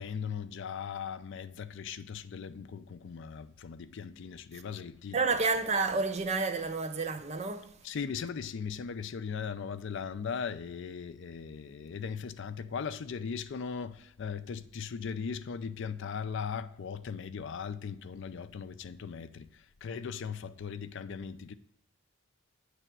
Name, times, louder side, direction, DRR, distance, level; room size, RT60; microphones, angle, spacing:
voice 1, 0.0-5.4 7.8-19.5 19.8-21.5, left 6 dB, 60° left, 0.4 m, -38 dB
voice 2, 5.1-7.7, right 4 dB, 30° right, 0.5 m, -30 dB
9.0 x 3.4 x 6.0 m
head